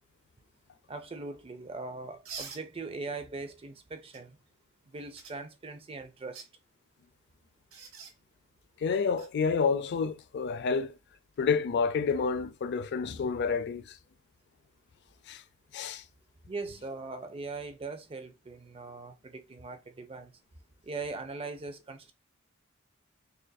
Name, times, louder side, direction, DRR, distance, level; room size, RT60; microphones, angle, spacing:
voice 1, 0.9-4.4 4.9-6.4 16.5-20.3 20.8-22.1, right 3 dB, 25° right, 0.5 m, -40 dB
sound 1, 2.2-2.6 4.1-4.2 5.2-5.3 6.2-6.5 7.7-8.1 9.2-9.3 11.3-11.5, right 5 dB, 80° right, 1.1 m, -44 dB
voice 2, 8.8-11.0 11.4-14.0 15.3-15.4 15.7-16.0, left 5 dB, 55° left, 0.4 m, -29 dB
6.5 x 2.5 x 2.2 m
head